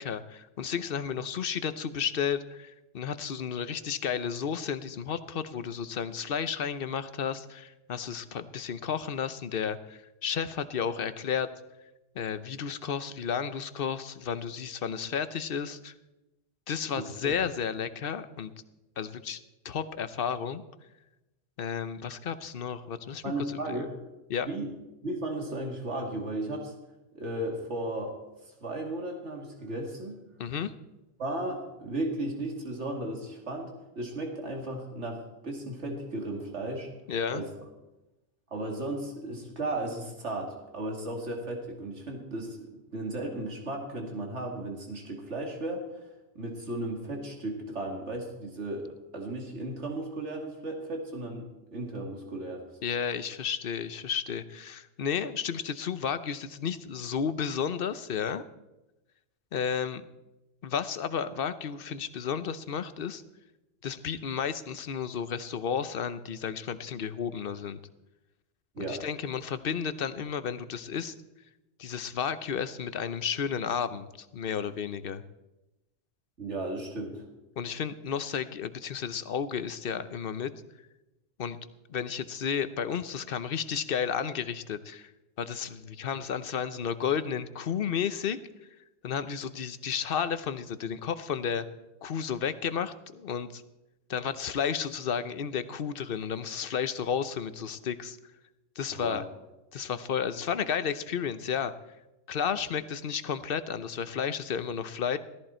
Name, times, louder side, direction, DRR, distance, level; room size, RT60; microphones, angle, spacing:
voice 1, 0.0-11.5 12.1-15.9 16.7-18.5 19.0-19.4 19.6-20.6 21.6-23.8 24.3-24.5 30.4-30.7 37.1-37.4 52.8-58.4 59.5-60.0 60.6-63.2 63.8-67.8 68.8-71.1 71.8-75.2 77.6-80.5 81.4-81.6 81.9-85.1 85.4-88.4 89.0-91.7 92.0-93.6 94.1-98.2 98.8-99.2 99.7-101.7 102.3-105.2, left 7 dB, 55° left, 13 dB, 0.9 m, -32 dB
voice 2, 17.0-17.3 23.2-23.9 24.5-24.7 25.0-26.7 27.1-28.1 28.5-30.2 31.2-36.9 37.3-37.5 38.5-45.8 46.3-52.6 68.7-69.0 76.4-77.2 98.9-99.2, right 1 dB, 80° right, 1 dB, 2.7 m, -35 dB
17.0 x 14.0 x 4.4 m, 0.99 s
omnidirectional pair, 1.2 m